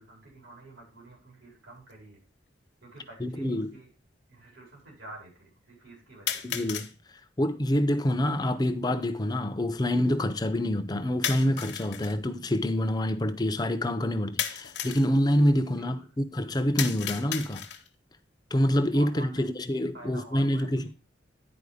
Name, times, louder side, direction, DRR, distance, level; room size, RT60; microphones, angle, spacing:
voice 1, 0.0-2.2 2.8-3.9 4.3-6.4 15.8-16.0 18.9-19.6 19.9-20.9, right 2 dB, 85° right, 4.6 m, -48 dB
sound 1, 1.9-2.0 3.0-3.1 6.3-6.9 11.2-12.2 14.4-15.1 16.8-17.9, left 9 dB, 60° left, 0.9 m, -33 dB
voice 2, 3.2-3.8 6.4-6.9 7.4-17.7 18.5-20.9, left 1 dB, 20° left, 0.6 m, -26 dB
9.8 x 4.6 x 5.0 m
head